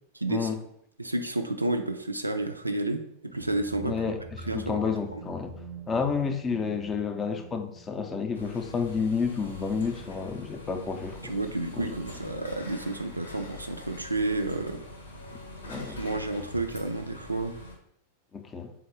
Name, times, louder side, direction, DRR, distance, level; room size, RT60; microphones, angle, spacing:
voice 1, 0.2-0.5 1.0-4.0 4.5-4.8 5.1-5.2 11.2-14.8 15.8-17.5, right 2 dB, 85° right, 6 dB, 0.3 m, -31 dB
sound 1, 3.3-11.0, right 3 dB, 35° right, 0.5 m, -46 dB
voice 2, 3.8-5.6 5.9-11.3 11.7-12.0 15.3-16.0 18.3-18.7, left 5 dB, 20° left, 7 dB, 0.4 m, -30 dB
sound 2, 8.3-17.8, left 1 dB, 70° left, 0.8 m, -43 dB
3.6 x 2.5 x 4.4 m, 0.72 s
figure-of-eight pair, 90°, 0 cm